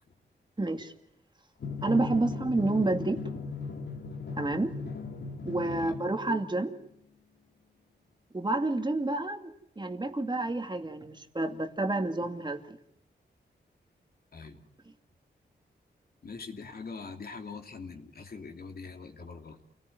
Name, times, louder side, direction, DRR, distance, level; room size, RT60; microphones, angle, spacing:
voice 1, 0.6-0.9 1.8-3.3 4.4-4.8 5.4-6.7 8.3-12.8, right 2 dB, 25° right, 5 dB, 2.3 m, -29 dB
Drum, 1.6-6.7, left 4 dB, 80° left, 3.4 m, -38 dB
voice 2, 5.7-6.0 14.3-14.6 16.2-19.6, left 4 dB, 60° left, 4 dB, 3.1 m, -43 dB
28.5 x 18.0 x 9.5 m, 0.75 s
wide cardioid pair, 80°, 18 cm